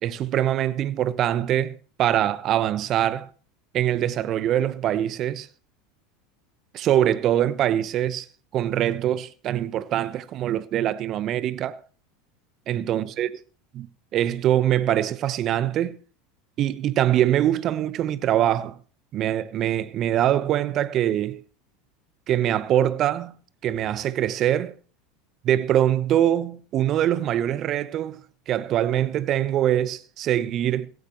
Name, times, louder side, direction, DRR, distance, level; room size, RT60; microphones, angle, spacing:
voice 1, 0.0-3.3 3.7-5.5 6.7-8.3 8.5-11.8 12.7-13.3 13.8-16.0 16.6-18.8 19.1-21.4 22.3-23.3 23.6-24.8 25.4-28.2 28.5-30.9, right 11 dB, 45° right, 1.0 m, -23 dB
16.0 x 16.0 x 3.1 m
hypercardioid pair, 85°, 0 cm